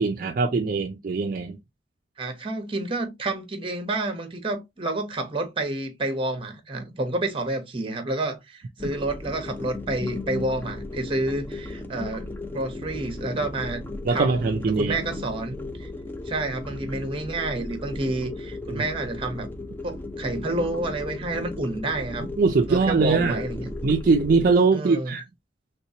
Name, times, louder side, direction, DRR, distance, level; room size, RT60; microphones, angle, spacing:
voice 1, 0.0-1.6 14.1-15.0 18.7-18.8 22.4-23.4 23.8-25.2, right 4 dB, 50° right, 0.4 m, -22 dB
voice 2, 2.2-13.8 14.1-15.9 16.3-19.5 19.8-22.3 22.7-23.7 24.7-25.1, right 2 dB, 30° right, 0.9 m, -29 dB
sound 1, 8.8-24.6, left 2 dB, 10° left, 0.4 m, -35 dB
3.2 x 3.0 x 2.7 m
head